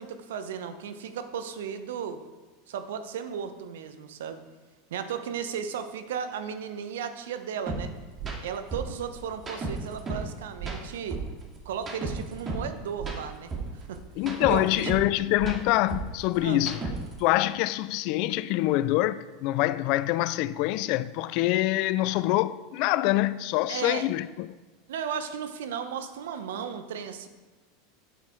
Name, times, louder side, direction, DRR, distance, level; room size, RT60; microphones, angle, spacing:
voice 1, 0.0-2.2 2.7-4.4 4.9-7.9 8.4-11.2 11.6-14.0 14.5-15.0 16.4-16.6 23.7-24.1 24.9-27.3, right 7 dB, 75° right, 1.0 m, -35 dB
sound 1, 7.7-7.8 8.2-8.4 8.7-10.3 10.6-12.7 13.0-15.1 15.4-17.2, right 3 dB, 30° right, 2.5 m, -34 dB
voice 2, 14.2-16.8 17.2-24.5, left 16 dB, 55° left, 0.4 m, -25 dB
9.3 x 8.4 x 4.6 m
hypercardioid pair, 90°, 0 cm